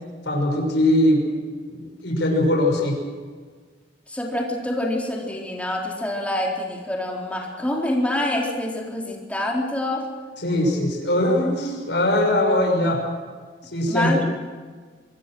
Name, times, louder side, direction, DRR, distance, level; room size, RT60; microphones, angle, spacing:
voice 1, 0.3-1.3 1.7-3.0 10.4-13.1 13.7-14.1, left 1 dB, 75° left, 2 dB, 6.1 m, -21 dB
voice 2, 4.1-10.0 13.9-14.3, left 1 dB, 10° left, -2 dB, 4.1 m, -26 dB
25.0 x 22.0 x 6.3 m, 1.5 s
head